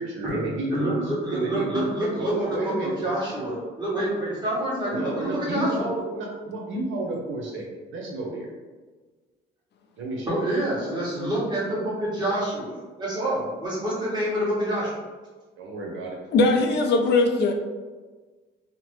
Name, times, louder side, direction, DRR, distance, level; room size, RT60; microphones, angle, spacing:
voice 1, 0.0-0.9 1.3-1.8 2.1-3.1 4.9-7.6 7.9-8.5 10.0-10.4 15.6-16.2, right 2 dB, 75° right, -2 dB, 0.8 m, -31 dB
voice 2, 0.7-5.9 10.2-15.0, right 1 dB, 20° right, -8 dB, 1.4 m, -27 dB
voice 3, 16.3-17.5, left 3 dB, 60° left, 4 dB, 0.4 m, -20 dB
2.9 x 2.1 x 3.1 m, 1.3 s
cardioid pair, 90°, 20 cm